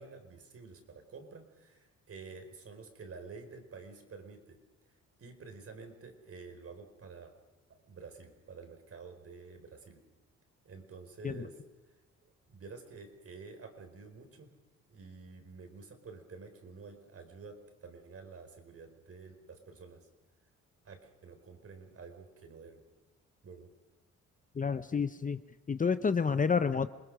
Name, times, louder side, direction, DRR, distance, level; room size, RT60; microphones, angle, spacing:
voice 1, 0.0-4.6 5.2-7.3 7.8-10.0 10.6-11.5 12.5-14.5 14.9-20.1 20.8-22.8 23.4-23.7, right 4 dB, 50° right, 6 dB, 4.4 m, -50 dB
voice 2, 24.6-25.4 25.7-26.9, left 5 dB, 25° left, 12 dB, 0.8 m, -29 dB
27.0 x 20.5 x 6.4 m, 1.1 s
cardioid pair, 90°, 30 cm